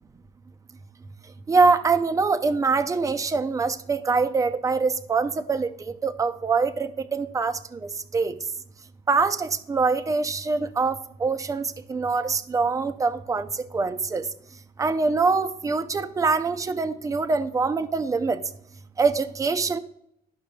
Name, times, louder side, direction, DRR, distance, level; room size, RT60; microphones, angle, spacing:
voice 1, 1.5-8.4 9.1-14.3 14.8-18.4 19.0-19.8, right 4 dB, 20° right, 9 dB, 0.5 m, -24 dB
11.5 x 5.8 x 2.3 m, 0.75 s
cardioid pair, 110°, 17 cm